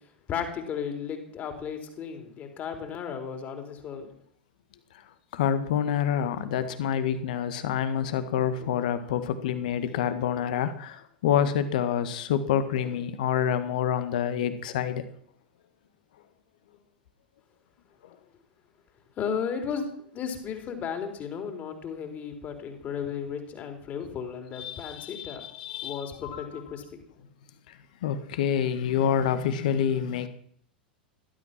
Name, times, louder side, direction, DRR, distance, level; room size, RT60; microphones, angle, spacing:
voice 1, 0.3-4.1 19.2-19.9 20.1-25.4 25.8-27.0, left 7 dB, 30° left, 5 dB, 3.9 m, -34 dB
voice 2, 5.3-15.0 24.6-26.5 28.0-30.3, left 9 dB, 55° left, 11 dB, 1.9 m, -27 dB
19.0 x 12.5 x 6.1 m, 0.64 s
figure-of-eight pair, 90°, 5 cm